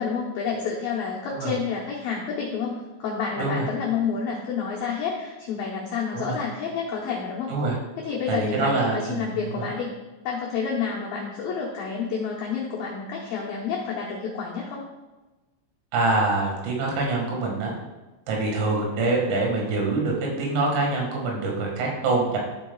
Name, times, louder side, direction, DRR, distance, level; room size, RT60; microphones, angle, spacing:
voice 1, 0.0-7.5 8.0-9.9 10.2-14.8, left 6 dB, 85° left, -3 dB, 2.0 m, -29 dB
voice 2, 8.3-9.7 15.9-17.8 18.3-22.4, right 3 dB, 85° right, -1 dB, 4.4 m, -25 dB
12.5 x 7.4 x 2.3 m, 1.1 s
omnidirectional pair, 5.6 m